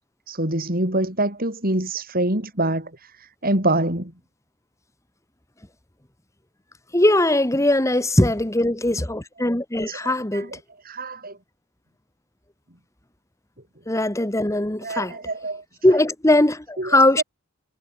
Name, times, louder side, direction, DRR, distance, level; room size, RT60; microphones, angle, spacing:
voice 1, 0.3-4.1 9.9-10.6 10.8-11.4 14.8-15.6 16.8-17.2, right 2 dB, 45° right, 6.4 m, -25 dB
voice 2, 6.9-10.5 13.9-15.1 15.8-17.2, left 1 dB, 15° left, 1.5 m, -20 dB
head